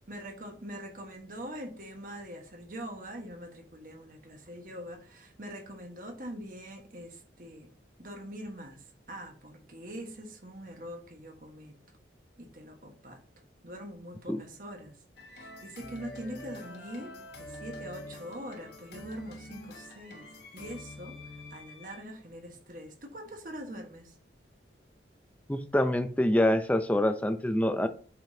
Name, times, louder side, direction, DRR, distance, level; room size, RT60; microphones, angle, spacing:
voice 1, 0.1-7.7 8.0-11.8 12.4-13.2 13.6-15.0 15.3-24.2, equal, 50° right, 1.4 m, -43 dB
sound 1, 15.2-22.0, left 1 dB, 70° left, 1.4 m, -46 dB
voice 2, 25.5-27.9, left 1 dB, 10° left, 0.5 m, -26 dB
7.5 x 5.1 x 2.8 m
head